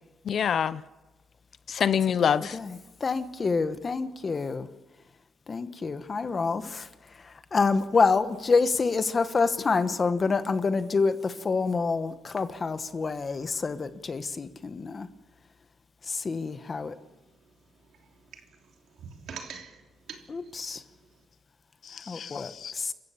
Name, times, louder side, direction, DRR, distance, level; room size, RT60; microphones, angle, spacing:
voice 1, 0.2-0.8 1.7-2.6 21.8-22.7, left 8 dB, 55° left, 0.7 m, -26 dB
voice 2, 2.2-4.7 5.5-15.1 16.0-17.0 20.3-20.8 22.1-22.9, left 4 dB, 30° left, 1.2 m, -27 dB
voice 3, 16.5-21.2, right 6 dB, 70° right, 3.3 m, -48 dB
28.0 x 15.0 x 7.2 m
cardioid pair, 115°, 0 cm